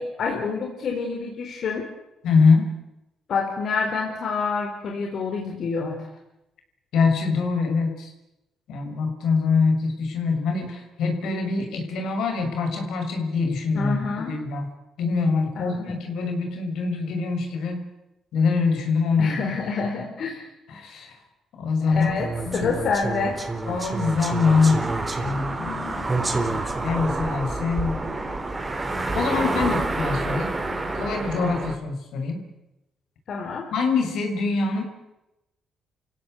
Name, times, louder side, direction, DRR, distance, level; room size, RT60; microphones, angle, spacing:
voice 1, 0.0-1.9 3.3-6.0 13.7-14.4 15.6-16.0 19.2-20.4 21.9-23.4 33.3-33.7, left 5 dB, 60° left, 1 dB, 4.1 m, -27 dB
voice 2, 2.2-2.7 6.9-8.1 8.7-14.7 15.0-17.9 18.3-19.4 20.7-21.2 21.6-22.2 22.4-22.7 23.7-24.8 25.2-26.4 26.8-28.0 29.1-30.6 30.9-32.4 33.7-34.8, left 4 dB, 80° left, 4 dB, 6.5 m, -24 dB
sound 1, 21.9-31.7, right 2 dB, 25° right, 3.9 m, -28 dB
30.0 x 16.5 x 8.0 m, 0.91 s
cardioid pair, 90°, 0 cm